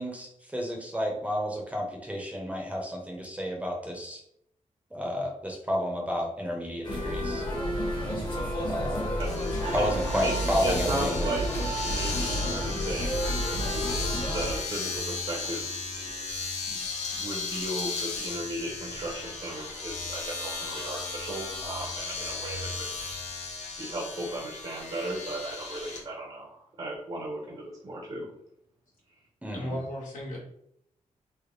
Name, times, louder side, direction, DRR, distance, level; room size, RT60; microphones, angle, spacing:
voice 1, 0.0-4.2 4.9-7.4 8.7-9.1 9.7-11.3 29.4-29.8, equal, 10° right, 0 dB, 0.8 m, -31 dB
sound 1, 6.8-14.6, equal, 35° left, 1.1 m, -31 dB
Domestic sounds home sounds, 9.2-26.0, left 4 dB, 60° left, 0.7 m, -35 dB
Screaming, 9.6-15.5, right 3 dB, 90° right, 0.9 m, -41 dB
voice 2, 10.6-11.4 11.9-13.4 14.3-15.6 16.7-16.9 17.2-22.9 23.8-28.3, right 1 dB, 45° right, -3 dB, 0.9 m, -36 dB
voice 3, 29.5-30.4, left 1 dB, 80° left, -4 dB, 1.3 m, -35 dB
3.4 x 2.0 x 3.8 m, 0.72 s
wide cardioid pair, 130°, 13 cm